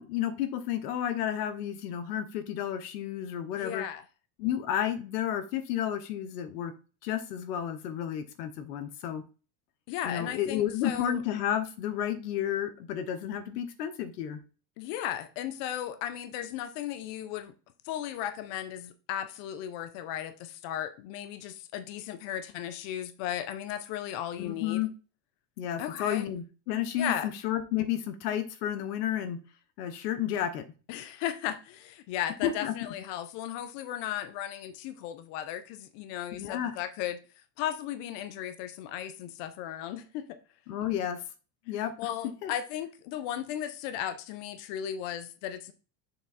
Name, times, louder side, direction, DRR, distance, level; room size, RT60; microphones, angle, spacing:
voice 1, 0.0-3.9 4.4-6.7 7.0-9.2 10.0-14.4 24.4-24.9 25.6-29.4 29.8-30.6 32.4-32.7 36.3-36.7 40.7-41.2 41.7-41.9 42.4-42.5, left 10 dB, 90° left, 1.1 m, -31 dB
voice 2, 3.6-4.0 9.9-11.2 14.8-17.5 17.8-24.8 25.8-26.2 27.0-27.3 30.9-37.2 37.6-40.4 42.0-45.7, left 11 dB, 65° left, 0.9 m, -36 dB
7.2 x 3.4 x 4.1 m
supercardioid pair, 105°, 46 cm